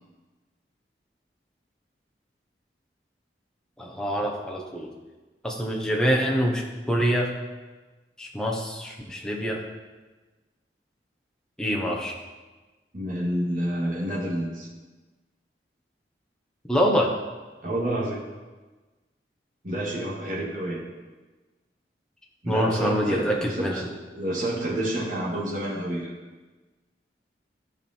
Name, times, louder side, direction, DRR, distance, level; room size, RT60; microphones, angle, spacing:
voice 1, 3.8-4.9 5.4-7.3 8.2-9.6 11.6-12.2 16.7-17.2 22.5-23.8, equal, 5° left, -2 dB, 1.1 m, -25 dB
voice 2, 12.9-14.7 17.6-18.2 19.6-20.8 22.4-26.1, right 1 dB, 45° right, -7 dB, 2.3 m, -29 dB
13.5 x 5.3 x 4.5 m, 1.3 s
head